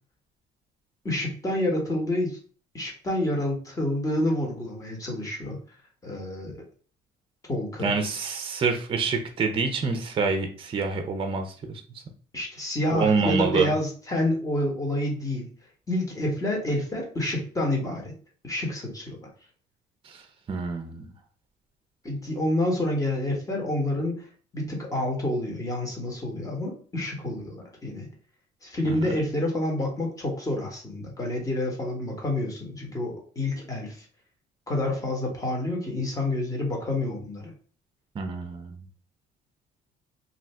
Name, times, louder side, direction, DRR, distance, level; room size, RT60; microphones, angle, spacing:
voice 1, 1.0-2.4 2.7-5.6 6.0-6.6 7.5-7.9 12.3-15.5 15.9-18.1 18.4-19.3 22.0-24.3 24.5-28.1 28.6-34.0 34.7-37.5, left 1 dB, 20° left, -1 dB, 1.1 m, -28 dB
voice 2, 7.8-11.8 12.9-13.7 20.0-20.2 20.5-21.1 28.9-29.1 38.1-38.8, right 4 dB, 30° right, 6 dB, 0.5 m, -27 dB
2.6 x 2.5 x 3.2 m, 0.41 s
cardioid pair, 110°, 17 cm